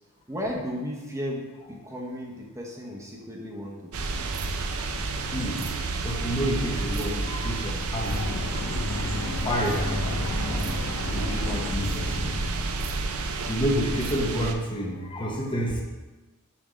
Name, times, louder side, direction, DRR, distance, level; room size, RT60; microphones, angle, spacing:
voice 1, 0.3-4.1 12.1-12.4, equal, 15° right, -2 dB, 0.8 m, -35 dB
sound 1, 3.9-14.5, right 3 dB, 65° right, 0.6 m, -31 dB
voice 2, 5.3-5.6 5.9-8.2 8.6-9.9 11.1-12.3 13.3-15.8, equal, 20° left, -1 dB, 0.8 m, -29 dB
sound 2, 8.1-14.1, left 1 dB, 65° left, 0.7 m, -32 dB
7.2 x 3.5 x 5.0 m, 1.2 s
head